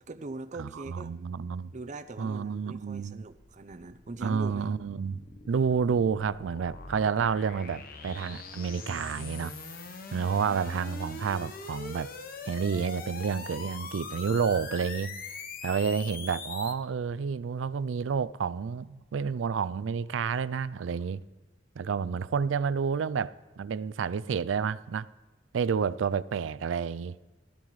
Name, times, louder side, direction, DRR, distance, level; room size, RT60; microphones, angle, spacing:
voice 1, 0.0-1.1 1.7-4.7, right 2 dB, 40° right, 0.6 m, -41 dB
voice 2, 0.6-1.7 2.2-3.3 4.2-9.5 10.1-12.1 12.5-15.1 15.6-21.2 21.8-25.1 25.5-27.2, right 6 dB, 85° right, 0.4 m, -30 dB
sound 1, 3.3-16.7, left 4 dB, 50° left, 1.0 m, -43 dB
16.0 x 13.0 x 3.2 m
head